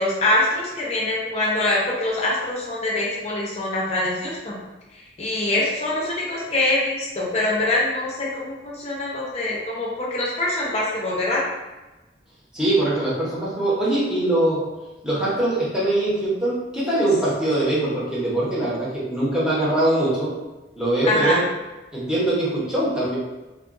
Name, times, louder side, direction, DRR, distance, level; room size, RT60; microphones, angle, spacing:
voice 1, 0.0-4.6 5.2-11.4 21.0-21.4, left 1 dB, 35° left, -4 dB, 0.7 m, -24 dB
voice 2, 12.5-14.6 15.0-20.3 20.8-21.4 21.9-23.2, right 1 dB, 5° right, -9 dB, 1.0 m, -22 dB
3.5 x 2.5 x 2.5 m, 1.1 s
head